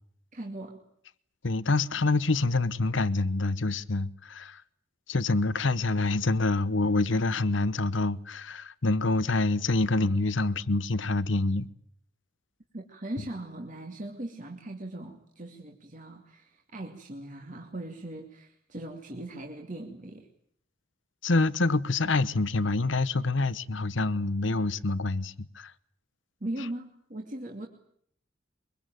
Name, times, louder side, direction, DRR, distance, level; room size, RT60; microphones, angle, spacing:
voice 1, 0.3-0.8 12.7-20.3 26.4-27.7, right 1 dB, 40° right, 2.5 m, -39 dB
voice 2, 1.4-4.6 5.1-11.7 21.2-25.7, left 3 dB, 70° left, 1.0 m, -26 dB
23.5 x 23.0 x 9.2 m
head